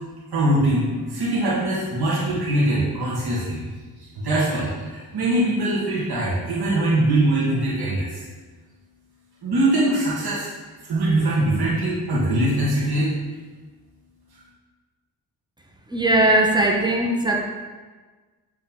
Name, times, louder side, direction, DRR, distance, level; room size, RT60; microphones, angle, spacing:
voice 1, 0.3-3.6 4.0-8.2 9.4-10.5 10.9-13.1, right 1 dB, 70° right, -7 dB, 1.7 m, -22 dB
voice 2, 15.9-17.4, right 1 dB, 10° right, 1 dB, 1.0 m, -19 dB
7.2 x 3.6 x 3.7 m, 1.4 s
cardioid pair, 55°, 40 cm